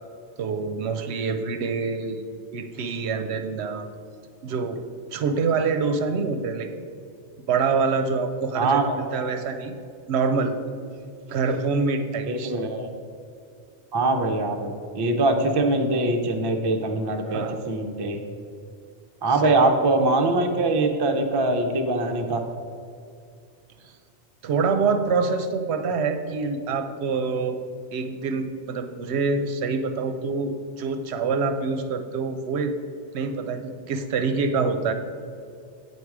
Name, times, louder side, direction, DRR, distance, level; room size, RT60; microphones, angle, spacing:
voice 1, 0.4-2.2 2.5-3.9 4.4-4.8 5.1-6.7 7.5-9.8 10.1-10.5 11.3-12.5 17.3-17.6 19.4-19.5 24.4-27.6 27.9-32.7 33.1-34.9, right 4 dB, 70° right, 8 dB, 0.8 m, -26 dB
voice 2, 8.5-9.0 12.2-12.9 13.9-18.2 19.2-22.4, right 2 dB, 35° right, 4 dB, 0.4 m, -23 dB
8.6 x 4.2 x 4.7 m, 2.4 s
omnidirectional pair, 1.2 m